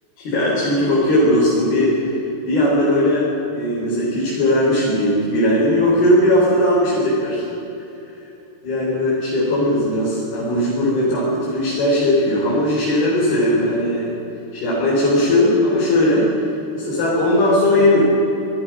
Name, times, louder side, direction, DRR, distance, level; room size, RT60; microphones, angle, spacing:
voice 1, 0.2-2.2 2.4-7.6 8.6-14.2 14.5-16.4 16.7-18.0, left 1 dB, 60° left, -7 dB, 6.6 m, -18 dB
27.0 x 19.5 x 6.5 m, 3.0 s
omnidirectional pair, 5.0 m